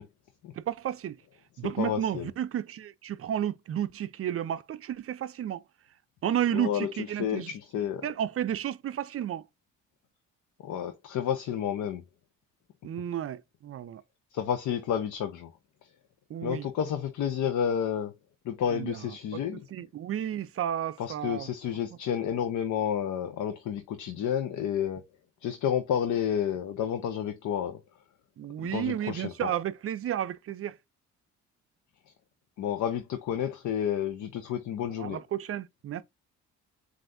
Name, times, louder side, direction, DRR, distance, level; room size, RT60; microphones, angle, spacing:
voice 1, 0.6-1.2 1.6-5.6 6.2-7.5 8.0-9.4 12.8-14.0 16.3-16.7 18.7-19.4 19.7-21.5 28.4-30.8 35.0-36.0, right 10 dB, 50° right, 0.5 m, -32 dB
voice 2, 1.6-2.3 6.5-6.9 7.2-8.0 10.6-12.0 14.3-15.5 16.4-18.1 18.4-19.6 21.0-25.0 25.4-27.8 28.6-29.5 32.6-35.2, left 9 dB, 75° left, 0.7 m, -30 dB
7.6 x 2.6 x 2.6 m
cardioid pair, 90°, 30 cm